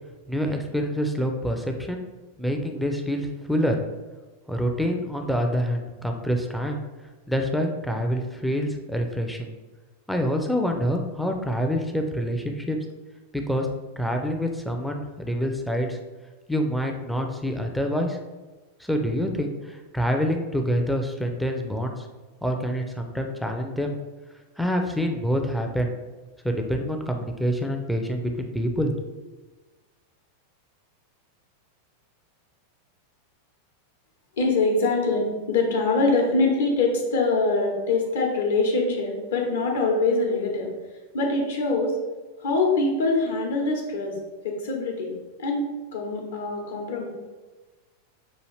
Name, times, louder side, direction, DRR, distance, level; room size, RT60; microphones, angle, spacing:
voice 1, 0.3-2.0 2.4-3.8 4.5-6.8 7.3-9.5 10.1-12.8 13.3-13.7 14.0-16.0 16.5-18.2 18.8-22.0 22.4-24.0 24.6-25.9 26.4-29.2, equal, ahead, 3 dB, 0.5 m, -26 dB
voice 2, 34.4-40.7 41.1-42.0 42.4-44.2 44.4-45.6 45.9-47.1, left 3 dB, 60° left, 1 dB, 1.0 m, -24 dB
6.2 x 2.4 x 3.2 m, 1.2 s
figure-of-eight pair, 90°, 0 cm